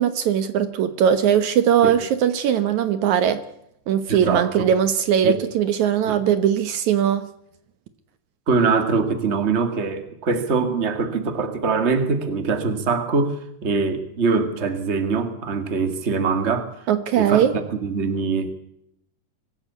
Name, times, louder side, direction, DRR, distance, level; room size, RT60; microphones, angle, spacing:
voice 1, 0.0-3.4 3.9-7.3 16.9-17.5, right 9 dB, 70° right, 2.3 m, -20 dB
voice 2, 4.1-4.7 5.2-5.3 6.1-6.2 8.5-16.7 17.2-18.5, right 4 dB, 25° right, 2.0 m, -23 dB
24.5 x 16.5 x 8.3 m
omnidirectional pair, 3.7 m